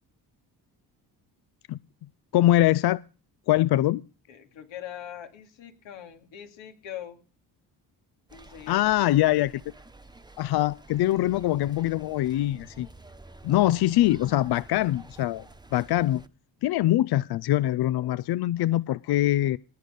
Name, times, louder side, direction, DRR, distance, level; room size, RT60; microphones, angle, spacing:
voice 1, 2.3-3.0 3.5-4.0 8.7-9.5 10.4-12.9 13.4-15.4 15.7-16.2 16.6-19.6, left 14 dB, 60° left, 0.5 m, -23 dB
voice 2, 4.3-7.2 8.3-8.8, left 10 dB, 80° left, 2.7 m, -42 dB
sound 1, 8.3-16.3, right 2 dB, 10° right, 1.2 m, -50 dB
19.0 x 6.6 x 5.2 m
supercardioid pair, 60°, 45 cm